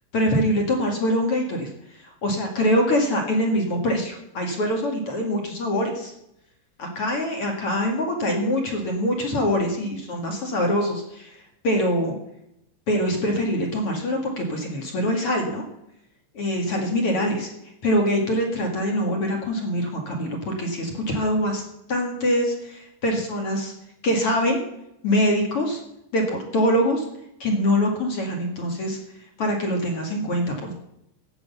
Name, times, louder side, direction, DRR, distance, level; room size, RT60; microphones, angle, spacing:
voice 1, 0.1-1.7 2.0-6.1 6.8-11.3 11.6-12.1 12.9-15.6 16.3-17.5 17.8-21.6 21.9-23.7 24.0-24.6 25.0-25.8 26.1-27.1 27.4-29.0 29.4-30.8, equal, 45° left, 2 dB, 1.9 m, -24 dB
17.0 x 6.9 x 7.1 m, 0.81 s
omnidirectional pair, 5.5 m